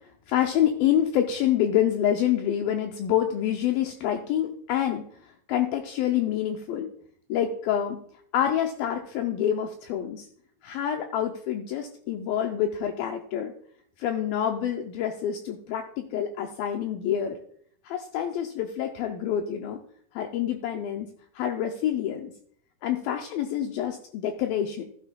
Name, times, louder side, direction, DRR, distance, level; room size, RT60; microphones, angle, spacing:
voice 1, 0.3-6.9 7.3-8.0 8.3-10.3 10.6-13.5 14.0-17.4 17.8-19.8 20.1-21.1 21.4-22.3 22.8-24.8, left 10 dB, 90° left, 5 dB, 2.0 m, -27 dB
14.5 x 9.1 x 2.2 m, 0.62 s
omnidirectional pair, 4.8 m